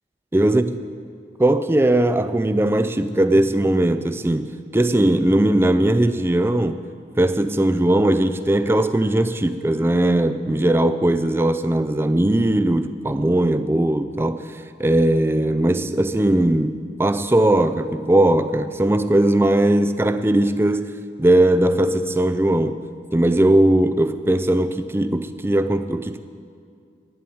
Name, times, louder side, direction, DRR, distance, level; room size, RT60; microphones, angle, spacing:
voice 1, 0.3-0.6 1.4-6.8 7.2-22.8 23.1-26.2, right 1 dB, 15° right, 11 dB, 0.4 m, -19 dB
11.0 x 10.0 x 8.6 m, 2.3 s
head